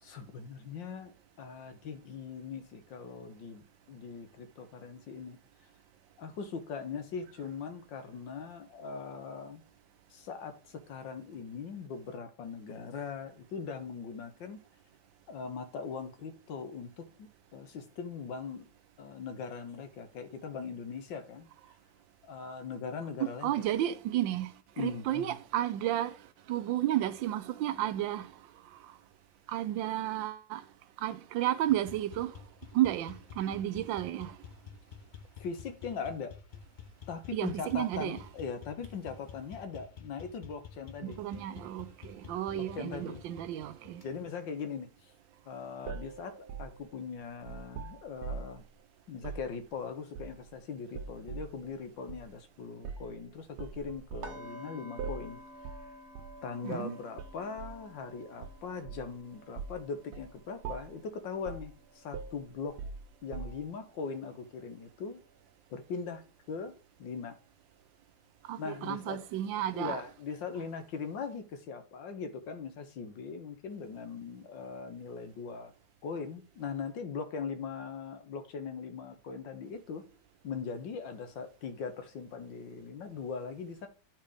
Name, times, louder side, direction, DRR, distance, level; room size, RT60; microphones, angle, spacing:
voice 1, 0.0-5.4 6.2-9.6 10.1-14.6 15.3-18.7 19.0-21.5 22.2-23.5 24.8-25.4 35.4-36.4 37.1-41.2 42.5-43.2 44.0-45.1 45.5-48.6 49.1-55.4 56.4-62.8 63.2-65.2 65.7-66.7 67.0-67.4 68.6-69.2 69.7-75.7 76.0-80.0 80.4-83.9, left 5 dB, 75° left, 1.8 m, -40 dB
voice 2, 23.2-26.2 26.5-28.3 28.7-28.9 29.5-30.6 31.0-32.4 32.7-34.4 37.3-38.2 41.0-44.0 56.6-56.9 68.4-70.0, right 13 dB, 80° right, 1.4 m, -32 dB
sound 1, 31.7-44.1, left 6 dB, 45° left, 0.6 m, -50 dB
sound 2, 45.9-48.6 49.2-49.5 50.2-50.6 50.9-51.6 52.1-52.3 52.8-53.2 53.6-54.4 55.0-55.3 55.6-55.9 56.2-56.4 57.2-57.8 58.4-59.2 59.6-59.8 60.1-60.3 60.6-61.0 61.5-61.7 62.1-63.8, right 5 dB, 65° right, 1.2 m, -42 dB
sound 3, 54.2-64.2 64.5-64.8 65.2-65.3, right 1 dB, 40° right, 1.3 m, -52 dB
10.5 x 4.5 x 5.0 m
omnidirectional pair, 2.1 m